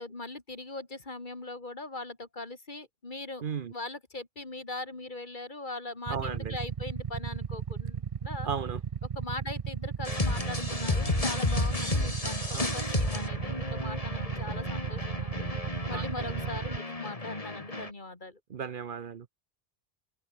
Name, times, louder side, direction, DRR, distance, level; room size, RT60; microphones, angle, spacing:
voice 1, 0.0-3.4 3.7-8.5 9.1-15.5 15.9-18.4, left 2 dB, 50° left, 2.8 m, -40 dB
voice 2, 3.4-3.7 6.1-6.6 8.4-8.8 12.5-12.7 15.9-16.0 18.5-19.3, right 6 dB, 60° right, 0.9 m, -35 dB
Motorcycle / Idling, 6.1-16.8, right 7 dB, 40° right, 0.6 m, -35 dB
sound 1, 10.0-17.9, left 2 dB, 35° left, 2.5 m, -32 dB
omnidirectional pair, 1.0 m